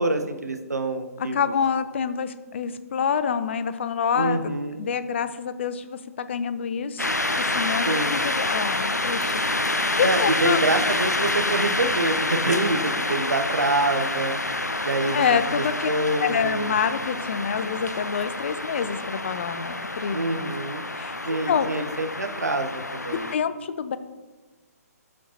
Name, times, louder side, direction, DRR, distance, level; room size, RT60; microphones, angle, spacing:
voice 1, 0.0-1.5 4.1-4.9 7.9-8.2 10.0-14.4 14.8-16.7 20.1-20.9 21.3-23.3, right 2 dB, 80° right, 6 dB, 0.7 m, -26 dB
voice 2, 1.2-4.5 4.8-7.1 7.4-9.3 9.6-10.6 15.1-15.9 16.2-20.2 20.9-21.2 21.5-21.8 23.3-24.0, left 7 dB, 45° left, 12 dB, 0.5 m, -27 dB
sound 1, 7.0-23.4, left 2 dB, 90° left, 0.6 m, -27 dB
12.0 x 5.2 x 2.9 m, 1.2 s
figure-of-eight pair, 130°, 9 cm